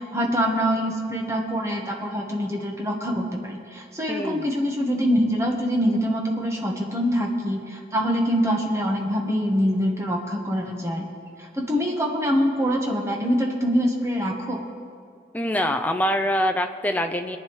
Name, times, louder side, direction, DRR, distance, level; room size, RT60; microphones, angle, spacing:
voice 1, 0.0-11.1 11.4-14.7, equal, 15° right, 0 dB, 1.3 m, -24 dB
voice 2, 4.1-4.5 15.3-17.4, equal, 10° left, 6 dB, 0.5 m, -24 dB
22.5 x 9.3 x 3.2 m, 2.3 s
head